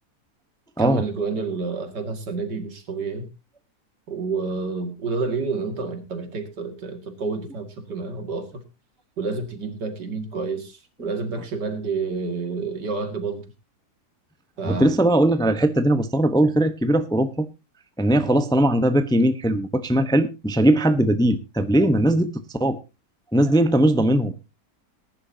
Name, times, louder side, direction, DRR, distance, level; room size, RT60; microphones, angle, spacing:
voice 1, 0.8-3.3 4.1-8.6 9.2-13.4 14.6-14.9, right 4 dB, 90° right, 7 dB, 2.7 m, -29 dB
voice 2, 14.7-17.5 18.0-22.3 22.6-22.8 23.3-24.3, right 1 dB, 5° left, 10 dB, 0.6 m, -19 dB
19.5 x 10.5 x 2.8 m, 0.26 s
omnidirectional pair, 1.8 m